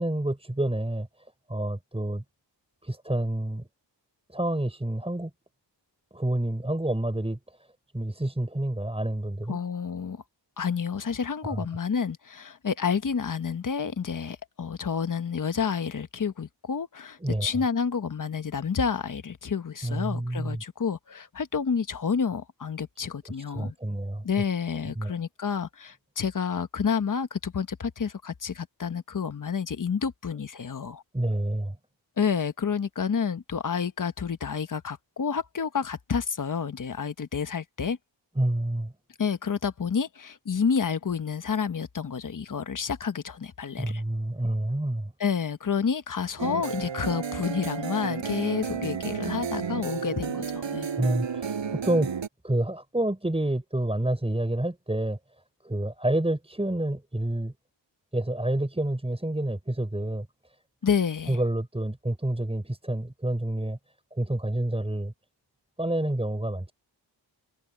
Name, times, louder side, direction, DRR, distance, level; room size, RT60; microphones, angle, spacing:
voice 1, 0.0-2.2 2.8-3.7 4.3-5.3 6.1-7.7 7.9-9.6 11.4-11.7 17.2-17.5 19.8-20.6 23.3-24.3 25.0-25.1 31.1-31.8 38.4-38.9 43.8-45.1 51.0-52.2 52.4-55.2 55.6-57.5 58.1-60.3 61.3-63.8 64.1-65.1 65.8-66.7, right 1 dB, 15° right, 5.6 m, -28 dB
voice 2, 9.5-10.2 10.6-23.7 24.2-31.0 32.2-38.0 39.2-44.0 45.2-50.9 60.8-61.4, left 6 dB, 45° left, 1.2 m, -29 dB
sound 1, 46.4-52.3, right 6 dB, 85° right, 5.3 m, -32 dB
wide cardioid pair, 85°, 44 cm